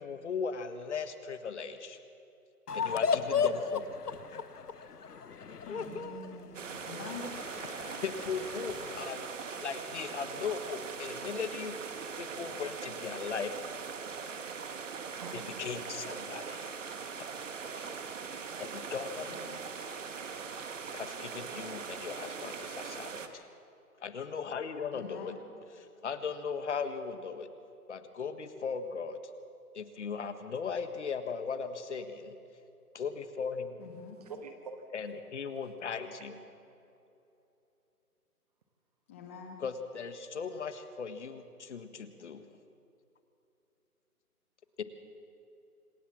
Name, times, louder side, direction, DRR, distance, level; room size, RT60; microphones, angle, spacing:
voice 1, 0.0-2.0 2.7-4.0 8.0-11.8 12.2-13.5 15.3-16.7 17.7-17.9 18.6-19.3 20.9-23.5 24.0-25.3 25.7-27.5 27.9-29.2 29.7-32.3 32.9-33.8 34.9-36.4 39.6-42.5 44.8-44.9, left 5 dB, 50° left, 9 dB, 1.5 m, -38 dB
sound 1, 2.7-9.1, left 6 dB, 85° left, 1.1 m, -35 dB
voice 2, 5.9-6.7 13.7-13.9 15.1-15.6 34.0-34.9, right 5 dB, 25° right, 5 dB, 1.2 m, -47 dB
sound 2, 6.5-23.3, right 5 dB, 55° right, 1.6 m, -41 dB
voice 3, 6.8-7.3 19.3-19.6 24.9-25.3 33.8-34.2 39.1-39.6, left 6 dB, 10° left, 3 dB, 0.8 m, -45 dB
26.5 x 13.5 x 7.3 m, 2.8 s
figure-of-eight pair, 155°, 45 cm